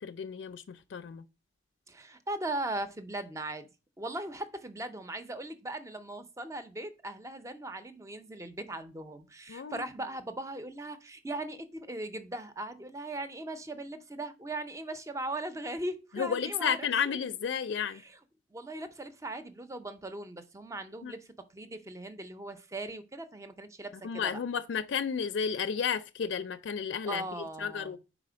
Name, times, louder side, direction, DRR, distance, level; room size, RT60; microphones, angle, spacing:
voice 1, 0.0-1.2 9.5-9.8 16.1-18.0 21.0-21.1 24.0-28.0, left 7 dB, 70° left, 0.4 m, -32 dB
voice 2, 1.9-3.7 4.0-17.2 17.8-18.2 18.5-24.3 27.1-28.0, right 1 dB, 15° right, 0.5 m, -39 dB
5.0 x 4.1 x 4.9 m
head